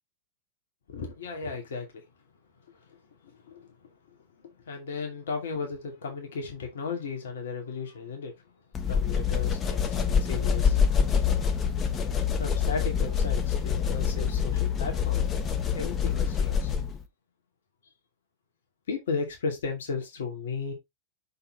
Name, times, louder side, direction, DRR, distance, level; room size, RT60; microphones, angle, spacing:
voice 1, 0.9-2.0 2.7-3.0 3.2-3.9 4.4-8.3 8.8-10.9 11.4-11.5 12.4-15.3 15.7-16.7 18.9-20.7, left 4 dB, 60° left, 2.6 m, -35 dB
sound 1, 8.7-17.0, left 7 dB, 25° left, 1.4 m, -26 dB
6.3 x 5.4 x 4.1 m
figure-of-eight pair, 90°, 0 cm